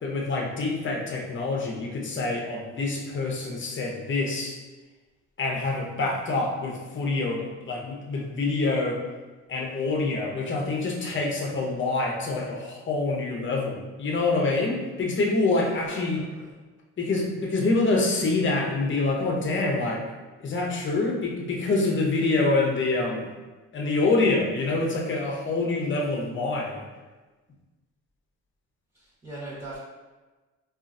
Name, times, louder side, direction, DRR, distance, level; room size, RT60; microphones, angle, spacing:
voice 1, 0.0-4.5 5.4-9.0 9.5-16.2 17.0-20.0 20.4-23.3 23.7-26.8, left 3 dB, 40° left, -1 dB, 0.7 m, -26 dB
voice 2, 15.5-16.2 28.9-29.8, right 1 dB, 15° right, -9 dB, 1.2 m, -40 dB
3.7 x 2.5 x 2.5 m, 1.2 s
cardioid pair, 90°, 30 cm